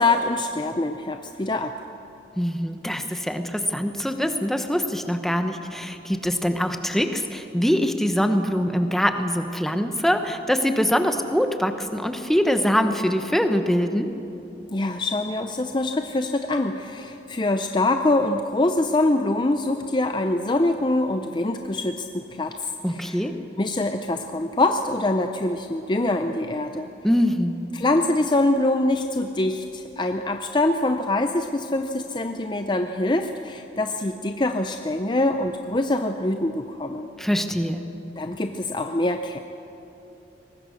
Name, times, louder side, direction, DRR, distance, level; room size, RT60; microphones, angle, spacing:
voice 1, 0.0-1.7 14.7-23.3 23.6-26.9 27.7-37.1 38.2-39.4, left 2 dB, 25° left, 6 dB, 0.6 m, -24 dB
voice 2, 2.4-14.1 22.8-23.4 27.0-27.6 37.2-37.9, equal, ahead, 7 dB, 0.9 m, -23 dB
23.0 x 20.0 x 6.4 m, 2.9 s
head